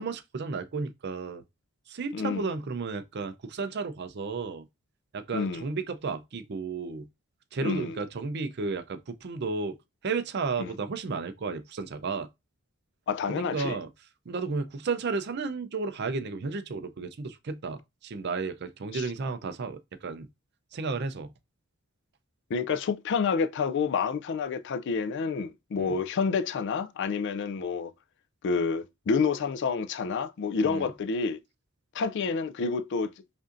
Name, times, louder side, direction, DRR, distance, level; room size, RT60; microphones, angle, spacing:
voice 1, 0.0-1.4 1.9-4.6 5.1-7.1 7.5-9.8 10.0-12.3 13.3-13.9 14.3-20.3 20.7-21.3 25.8-25.9 30.6-30.9, right 4 dB, 50° right, 0.5 m, -33 dB
voice 2, 2.1-2.5 5.3-5.6 7.6-8.0 10.6-10.7 13.1-13.8 18.9-19.1 22.5-27.9 28.4-31.4 31.9-33.1, left 5 dB, 55° left, 0.3 m, -29 dB
5.3 x 2.6 x 2.5 m
head